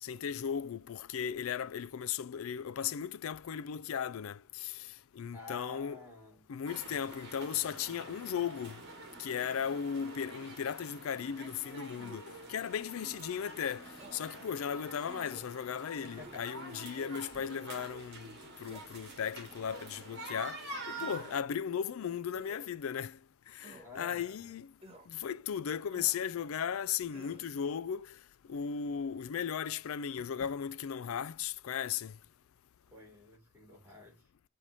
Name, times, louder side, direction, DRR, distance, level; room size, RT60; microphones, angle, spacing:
voice 1, 0.0-6.0 6.5-8.8 9.2-18.4 18.6-23.2 23.5-24.7 25.1-28.2 28.5-32.2, left 8 dB, 70° left, 0.4 m, -36 dB
voice 2, 5.3-6.4 16.0-16.5 23.7-24.5 32.9-34.2, left 2 dB, 10° right, 3.5 m, -50 dB
sound 1, 6.7-21.4, right 2 dB, 50° right, 1.8 m, -47 dB
sound 2, 11.9-12.4 13.0-13.3 14.0-14.2 15.0-15.5 16.2-16.5 17.3-17.7 18.7-18.8 19.7-20.1 21.0-21.5 22.3-22.7 23.6-23.9 24.8-25.1 25.9-26.2 27.1-27.5, right 1 dB, 25° right, 1.4 m, -53 dB
7.4 x 3.4 x 5.3 m
head